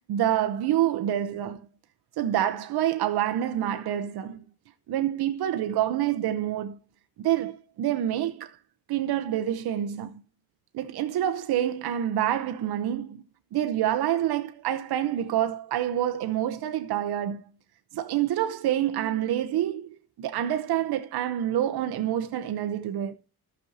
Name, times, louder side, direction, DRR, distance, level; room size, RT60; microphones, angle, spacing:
voice 1, 0.1-1.6 2.2-4.4 4.9-6.8 7.2-8.5 8.9-10.1 10.7-13.2 13.5-17.4 17.9-23.2, right 11 dB, 80° right, 0.9 m, -27 dB
14.0 x 6.3 x 2.7 m
cardioid pair, 85°, 38 cm